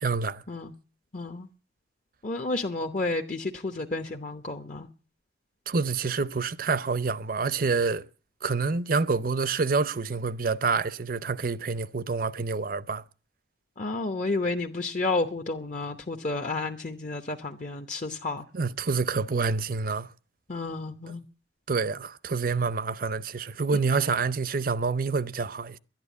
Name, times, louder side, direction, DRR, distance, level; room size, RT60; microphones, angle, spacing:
voice 1, 0.0-0.4 5.7-8.0 8.4-13.0 18.5-20.1 21.7-25.8, right 4 dB, 50° right, 0.6 m, -27 dB
voice 2, 1.1-1.5 2.2-4.9 13.8-18.4 20.5-21.2, left 3 dB, 45° left, 1.0 m, -31 dB
12.0 x 11.0 x 8.3 m
head